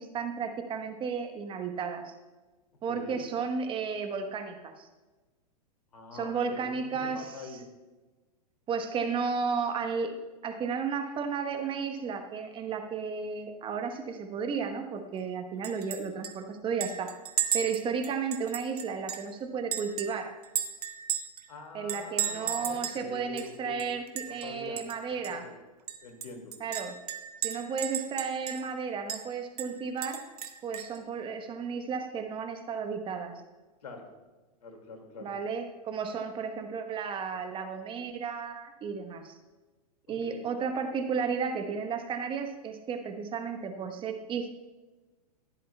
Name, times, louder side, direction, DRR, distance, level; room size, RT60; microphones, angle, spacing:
voice 1, 0.0-2.1 2.8-4.9 6.1-7.3 8.7-10.1 10.4-17.2 17.5-20.4 21.7-25.4 26.6-26.9 27.4-30.2 30.6-33.4 35.2-39.3 40.1-44.5, right 5 dB, 25° right, 6 dB, 1.1 m, -33 dB
voice 2, 2.9-3.2 5.9-7.6 21.5-23.9 24.3-24.8 25.3-25.6 26.0-26.5 33.8-34.1 34.6-35.3 40.1-40.5, left 3 dB, 75° left, 4 dB, 2.3 m, -44 dB
Chink clink, 15.6-16.0 16.2-16.3 16.8-19.3 19.7-21.4 21.9-23.0 23.4-23.5 23.8-24.5 24.8-24.9 25.2-25.3 25.9-28.8 29.1-29.2 29.6-31.0, right 9 dB, 70° right, 1.2 m, -34 dB
15.0 x 11.0 x 2.3 m, 1.2 s
hypercardioid pair, 105°, 20 cm